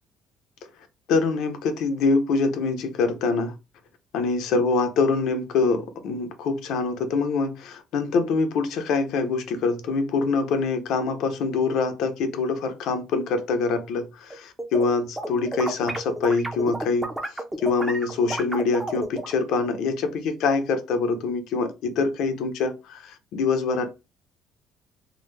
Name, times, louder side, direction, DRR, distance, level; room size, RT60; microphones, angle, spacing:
voice 1, 1.1-3.5 4.1-23.9, left 4 dB, 65° left, 0.7 m, -25 dB
sound 1, 14.3-14.9 15.2-19.4, right 1 dB, 5° right, 0.4 m, -31 dB
3.6 x 2.0 x 3.2 m
cardioid pair, 180°, 0 cm